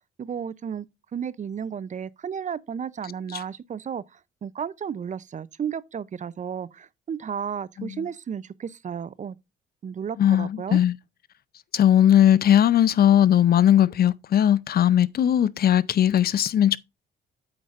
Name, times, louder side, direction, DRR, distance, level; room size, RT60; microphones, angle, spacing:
voice 1, 0.2-0.9 1.1-9.4 9.8-10.8, right 7 dB, 40° right, 0.5 m, -33 dB
voice 2, 10.2-10.9 11.7-16.8, left 10 dB, 50° left, 0.5 m, -19 dB
8.5 x 8.0 x 2.5 m
cardioid pair, 90°, 20 cm